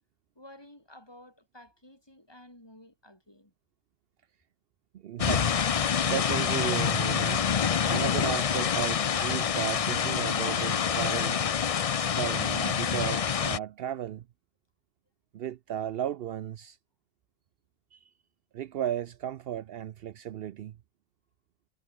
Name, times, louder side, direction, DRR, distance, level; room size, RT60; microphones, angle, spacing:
voice 1, 0.3-3.5, left 1 dB, 25° left, 4.6 m, -52 dB
voice 2, 4.9-5.8 6.0-11.4 12.0-14.3 15.3-16.8 17.9-18.1 18.5-20.8, right 11 dB, 70° right, 0.8 m, -35 dB
sound 1, 5.2-13.6, left 7 dB, 45° left, 0.6 m, -27 dB
omnidirectional pair, 1.1 m